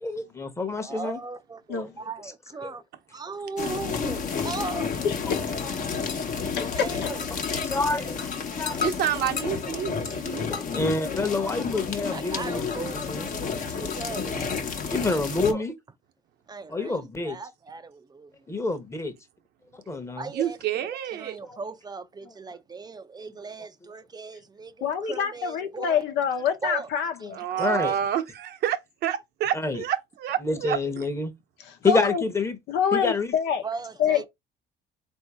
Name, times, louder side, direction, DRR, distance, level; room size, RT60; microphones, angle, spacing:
voice 1, 0.0-1.2 1.7-1.8 4.3-4.5 6.6-6.7 7.6-8.9 10.5-13.3 14.9-15.7 16.7-17.4 18.5-19.1 19.7-20.3 21.4-21.6 27.6-27.9 29.5-29.8 30.4-31.3 31.8-32.6 32.9-33.3, left 3 dB, 15° left, 0.9 m, -28 dB
voice 2, 0.8-2.8 3.1-4.9 5.8-5.9 6.7-7.2 12.1-14.7 15.5-15.6 16.5-18.3 20.2-26.0 26.6-26.9 27.2-27.3 33.6-34.2, right 4 dB, 25° right, 0.5 m, -37 dB
sound 1, 3.6-15.5, left 5 dB, 50° left, 1.0 m, -31 dB
voice 3, 5.0-5.4 6.6-6.7 7.0-7.1 24.8-27.4 31.6-32.2 32.7-33.6 34.0-34.3, left 7 dB, 80° left, 1.0 m, -26 dB
voice 4, 8.8-10.5 20.3-21.4 27.3-30.8, right 10 dB, 75° right, 0.9 m, -28 dB
3.8 x 2.7 x 4.7 m
cardioid pair, 110°, 17 cm